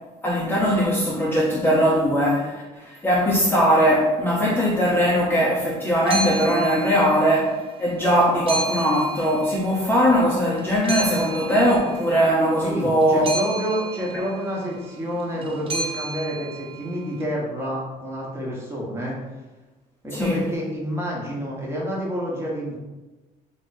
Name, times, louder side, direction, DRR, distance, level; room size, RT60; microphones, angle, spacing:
voice 1, 0.2-13.3 20.1-20.4, equal, 15° left, -6 dB, 0.6 m, -20 dB
sound 1, 6.0-7.6 7.9-10.2 10.6-17.1, right 3 dB, 35° right, 0.4 m, -33 dB
voice 2, 12.6-19.2 20.0-22.8, equal, 15° right, -4 dB, 1.0 m, -28 dB
3.0 x 2.7 x 3.9 m, 1.1 s
cardioid pair, 110°, 17 cm